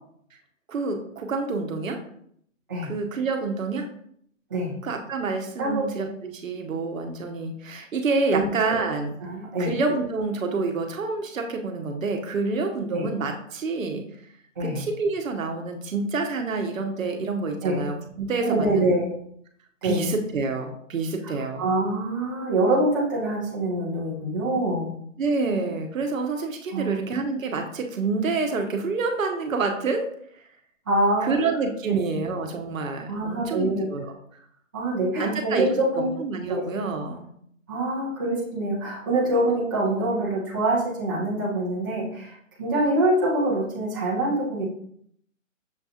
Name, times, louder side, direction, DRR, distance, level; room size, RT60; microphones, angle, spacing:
voice 1, 0.7-2.0 2.8-3.9 4.8-9.2 9.6-14.0 14.6-18.9 19.8-21.6 25.2-30.1 31.2-34.1 35.2-35.7 36.0-37.3, right 3 dB, 75° right, 4 dB, 0.9 m, -28 dB
voice 2, 8.3-8.8 9.2-9.8 12.9-13.0 14.6-14.8 17.6-17.8 18.4-19.1 19.8-20.0 21.3-24.9 26.7-27.0 30.9-31.4 31.9-32.2 33.1-33.9 34.7-36.1 36.5-36.6 37.7-44.6, right 1 dB, 15° right, -8 dB, 0.6 m, -25 dB
6.6 x 2.3 x 2.7 m, 0.67 s
hypercardioid pair, 165°, 40 cm